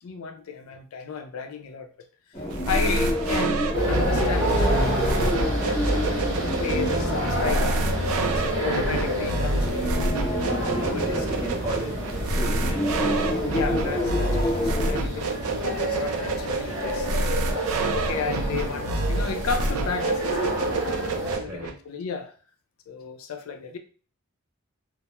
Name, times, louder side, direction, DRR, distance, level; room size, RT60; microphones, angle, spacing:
voice 1, 0.0-1.9 2.7-5.1 5.6-7.7 8.4-10.0 10.6-11.2 13.5-17.1 17.9-20.6 21.4-22.3 22.9-23.8, left 5 dB, 75° left, 0.4 m, -33 dB
sound 1, 2.3-15.0, equal, 25° left, 0.8 m, -30 dB
sound 2, 2.5-21.7, right 2 dB, 85° right, 0.4 m, -28 dB
sound 3, 3.7-21.4, equal, 60° right, 0.7 m, -28 dB
voice 2, 10.5-13.6 21.4-21.7, right 1 dB, 10° right, 0.3 m, -35 dB
2.1 x 2.0 x 2.9 m
head